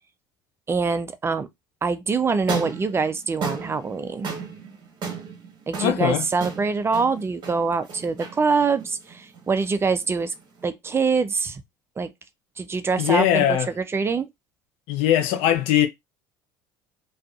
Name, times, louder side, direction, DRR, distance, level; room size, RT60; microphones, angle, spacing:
voice 1, 0.7-1.5 1.8-4.3 5.7-10.3 10.6-11.6 12.0-12.1 12.6-14.3, right 4 dB, 25° right, 0.4 m, -24 dB
sound 1, 2.3-10.6, right 5 dB, 50° right, 1.2 m, -35 dB
voice 2, 5.8-6.2 13.0-13.7 14.9-15.9, left 11 dB, 70° left, 0.6 m, -20 dB
2.5 x 2.4 x 2.4 m
supercardioid pair, 80°, 10 cm